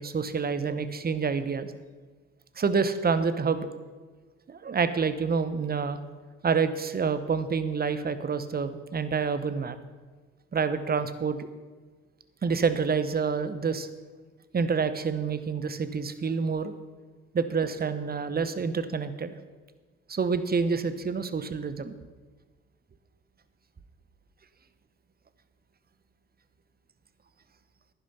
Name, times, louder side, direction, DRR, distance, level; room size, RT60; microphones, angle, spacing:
voice 1, 0.0-1.7 2.6-3.7 4.5-6.0 6.4-9.8 10.5-11.5 12.4-13.9 14.5-16.7 17.3-19.3 20.1-21.9, right 5 dB, 30° right, 12 dB, 1.1 m, -28 dB
10.5 x 10.0 x 5.7 m, 1.4 s
hypercardioid pair, 55°, 32 cm